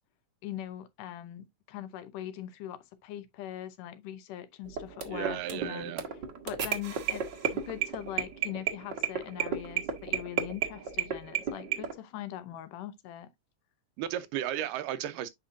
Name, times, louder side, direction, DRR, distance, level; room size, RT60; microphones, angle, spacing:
voice 1, 0.4-5.9 6.4-13.3, left 11 dB, 80° left, 2.4 m, -41 dB
sound 1, 4.7-11.9, right 8 dB, 55° right, 1.2 m, -33 dB
voice 2, 5.1-6.1 14.0-15.3, right 11 dB, 85° right, 2.4 m, -34 dB
8.4 x 5.5 x 2.6 m
omnidirectional pair, 3.7 m